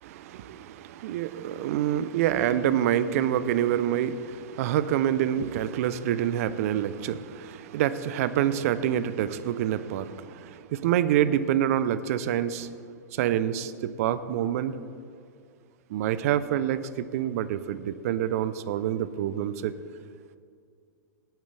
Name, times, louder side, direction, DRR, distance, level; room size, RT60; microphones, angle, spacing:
voice 1, 0.0-12.7 13.1-14.8 15.9-19.7, right 10 dB, 55° right, 0.6 m, -27 dB
18.5 x 9.2 x 3.4 m
hypercardioid pair, 105°, 9 cm